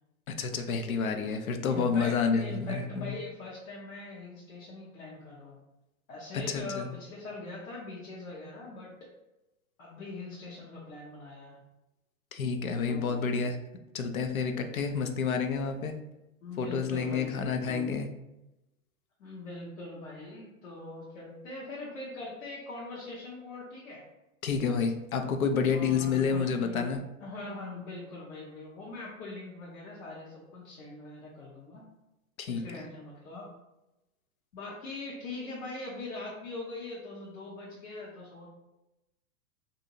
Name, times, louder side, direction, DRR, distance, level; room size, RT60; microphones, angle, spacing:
voice 1, 0.4-3.1 6.3-6.9 12.3-13.6 13.9-16.0 16.6-18.1 24.4-27.0 32.4-32.8, left 5 dB, 90° left, 6 dB, 0.5 m, -29 dB
voice 2, 1.7-5.6 6.1-8.9 9.8-11.6 12.9-13.2 16.4-17.9 19.2-24.0 25.7-26.9 27.2-31.8 32.5-33.5 34.5-38.5, left 2 dB, 75° left, -6 dB, 0.9 m, -42 dB
2.7 x 2.5 x 2.7 m, 0.95 s
hypercardioid pair, 105°, 41 cm